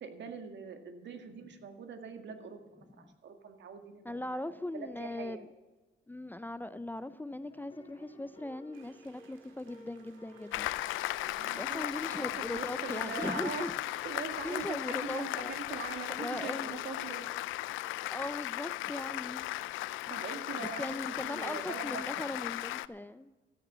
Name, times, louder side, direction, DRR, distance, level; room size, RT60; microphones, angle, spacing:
voice 1, 0.0-5.4 11.4-13.7 14.0-17.3 20.1-21.0 21.2-22.3, right 6 dB, 65° right, 6 dB, 2.0 m, -43 dB
voice 2, 4.0-5.5 6.1-10.7 11.6-13.7 14.4-15.5 16.2-16.8 18.1-19.5 20.6-23.3, left 1 dB, 10° left, 14 dB, 0.5 m, -39 dB
sound 1, 7.0-22.6, left 1 dB, 25° left, 4.2 m, -58 dB
sound 2, 8.7-15.8, right 7 dB, 90° right, 2.0 m, -62 dB
Applause, 10.5-22.9, left 16 dB, 90° left, 0.4 m, -37 dB
13.5 x 9.3 x 7.5 m, 1.2 s
cardioid pair, 90°, 20 cm